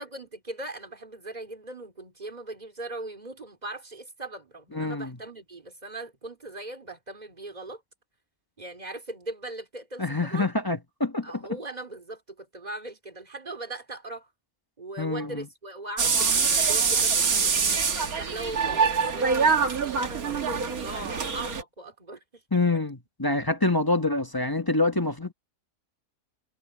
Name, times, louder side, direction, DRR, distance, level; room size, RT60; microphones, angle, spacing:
voice 1, 0.0-7.8 8.6-10.5 11.2-14.3 14.8-22.4 22.7-22.8, right 2 dB, 25° right, 3.2 m, -40 dB
voice 2, 4.7-5.2 10.0-11.4 15.0-15.5 22.5-25.3, left 2 dB, 15° left, 1.1 m, -26 dB
sound 1, 16.0-21.6, right 5 dB, 60° right, 2.1 m, -24 dB
omnidirectional pair, 1.8 m